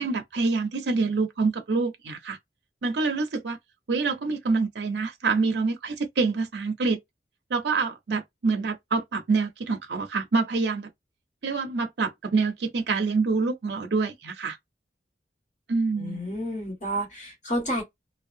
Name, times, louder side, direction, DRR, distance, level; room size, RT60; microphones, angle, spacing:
voice 1, 0.0-2.4 2.8-3.6 3.9-7.0 7.5-10.9 11.4-14.6 15.7-16.2, right 4 dB, 75° right, 0.5 m, -26 dB
voice 2, 16.0-17.8, equal, 40° left, 1.6 m, -30 dB
2.6 x 2.2 x 2.5 m
head